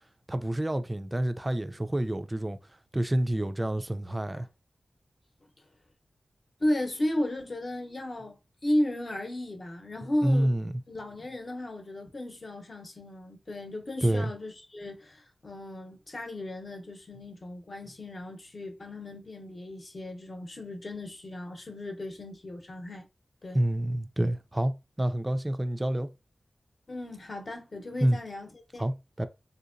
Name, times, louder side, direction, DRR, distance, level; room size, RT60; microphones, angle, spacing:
voice 1, 0.3-2.6 2.9-4.5 10.2-10.7 14.0-14.3 23.5-24.7 25.0-26.1 28.0-28.2 28.8-29.3, right 1 dB, 20° right, 0.3 m, -28 dB
voice 2, 6.6-10.6 10.9-23.1 23.4-23.6 26.9-28.9, left 1 dB, 45° left, 0.8 m, -34 dB
3.6 x 2.8 x 2.5 m
wide cardioid pair, 105°, 0 cm